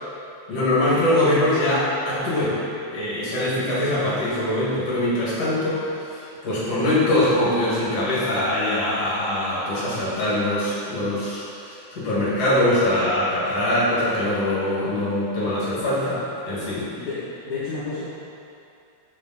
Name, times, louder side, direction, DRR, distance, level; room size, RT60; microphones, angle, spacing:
voice 1, 0.5-2.6 2.9-16.9, left 1 dB, 55° left, -9 dB, 3.1 m, -23 dB
voice 2, 17.0-18.1, left 3 dB, 75° left, -11 dB, 2.7 m, -31 dB
7.0 x 6.9 x 4.1 m, 2.6 s
omnidirectional pair, 3.4 m